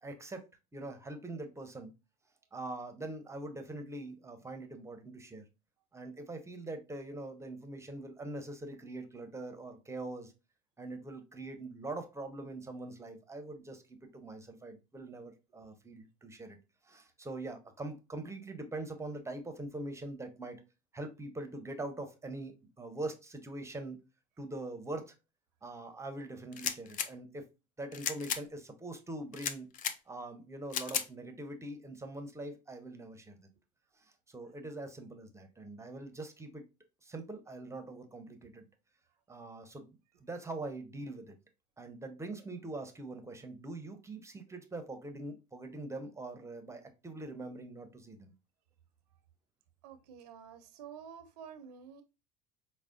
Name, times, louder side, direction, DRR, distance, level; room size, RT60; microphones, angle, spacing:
voice 1, 0.0-1.9 2.5-5.4 5.9-10.3 10.8-16.6 16.8-20.6 20.9-24.0 24.4-25.1 25.6-27.5 27.8-29.7 30.1-33.5 34.0-36.6 37.0-38.7 39.3-41.4 41.8-48.3, right 2 dB, 15° right, 0.6 m, -43 dB
sound 1, 26.5-27.1 27.9-28.4 29.3-30.0 30.7-31.1, left 8 dB, 40° left, 0.4 m, -35 dB
voice 2, 49.8-52.0, right 7 dB, 85° right, 0.5 m, -50 dB
4.7 x 2.1 x 2.4 m
hypercardioid pair, 85°, 20 cm